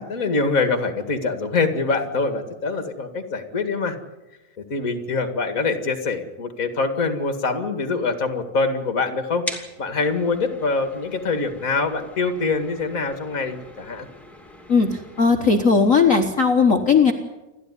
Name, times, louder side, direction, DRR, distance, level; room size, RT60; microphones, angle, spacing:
voice 1, 0.0-4.0 4.6-14.1, left 4 dB, 30° left, 8 dB, 2.0 m, -24 dB
sound 1, 9.5-15.2, left 1 dB, ahead, 2.3 m, -40 dB
voice 2, 14.7-17.1, left 5 dB, 75° left, 4 dB, 0.7 m, -17 dB
29.0 x 12.5 x 9.9 m, 1.0 s
omnidirectional pair, 3.5 m